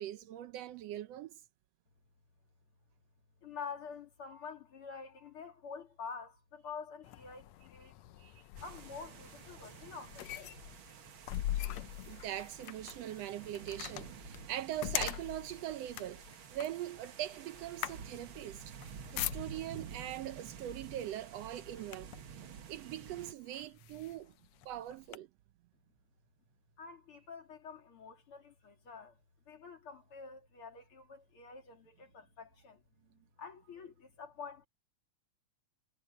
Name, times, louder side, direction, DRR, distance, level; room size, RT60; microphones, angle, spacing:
voice 1, 0.0-1.4 8.2-8.4 11.1-11.2 12.1-16.2 16.5-18.7 19.1-22.1 22.4-24.3 24.6-25.3, right 12 dB, 75° right, 1.5 m, -41 dB
voice 2, 3.4-7.9 8.6-10.3 11.6-11.8 12.1-12.3 26.8-29.2 29.5-32.8 33.4-34.7, left 5 dB, 45° left, 3.3 m, -48 dB
sound 1, 7.0-19.9 20.7-20.9 21.3-22.3 23.0-23.1 23.5-25.2, left 14 dB, 75° left, 1.7 m, -42 dB
sound 2, 8.6-23.3, right 7 dB, 55° right, 1.7 m, -51 dB
omnidirectional pair, 3.5 m